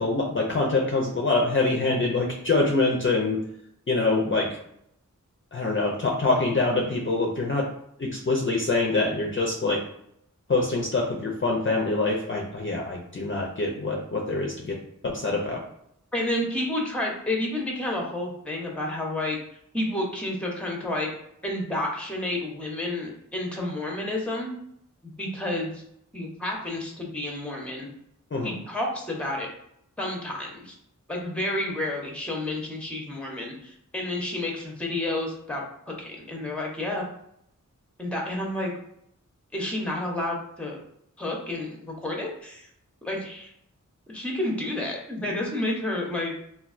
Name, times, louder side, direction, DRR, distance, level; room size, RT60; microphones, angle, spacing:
voice 1, 0.0-3.4 3.9-4.5 5.5-7.6 8.0-9.8 10.5-14.8 15.0-15.6 28.3-28.5, left 3 dB, 40° left, -1 dB, 0.5 m, -25 dB
voice 2, 16.1-19.4 19.7-21.1 21.4-24.5 25.2-25.8 26.1-27.9 28.4-29.5 30.0-30.7 31.1-37.1 38.0-38.7 39.5-40.8 41.2-42.7 43.0-43.5 44.1-46.5, left 1 dB, 5° left, -1 dB, 0.8 m, -30 dB
3.2 x 2.4 x 2.4 m, 0.73 s
wide cardioid pair, 65°, 32 cm